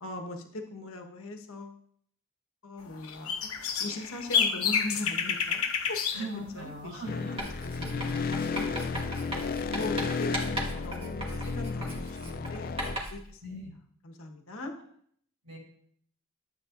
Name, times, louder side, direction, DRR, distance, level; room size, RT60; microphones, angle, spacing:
voice 1, 0.0-1.8 2.6-3.5 3.8-6.3 6.5-7.5 7.8-9.2 9.7-13.4 14.0-14.7, left 2 dB, 75° left, 3 dB, 1.3 m, -40 dB
sound 1, 2.9-6.3 6.6-6.7 9.6-9.8, left 7 dB, 90° left, 1.1 m, -29 dB
voice 2, 6.1-7.4 7.7-8.1 9.2-9.8 13.4-13.7 15.4-15.6, right 1 dB, 75° right, -3 dB, 4.6 m, -41 dB
sound 2, 7.1-13.0, left 4 dB, 45° left, 0.4 m, -33 dB
Writing, 7.4-13.3, right 1 dB, 25° right, 1.6 m, -37 dB
12.5 x 8.3 x 2.6 m, 0.62 s
head